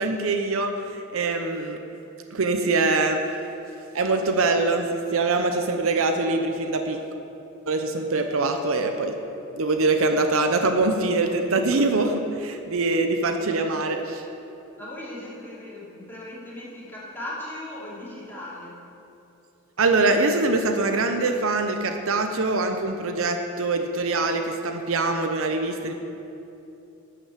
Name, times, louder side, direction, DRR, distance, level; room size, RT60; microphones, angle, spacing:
voice 1, 0.0-1.8 2.3-3.2 3.9-7.0 7.7-9.2 9.5-14.2 19.8-25.9, right 3 dB, 65° right, 5 dB, 0.8 m, -23 dB
voice 2, 14.8-18.7, left 1 dB, 10° left, -8 dB, 2.9 m, -38 dB
12.5 x 5.9 x 7.4 m, 2.9 s
head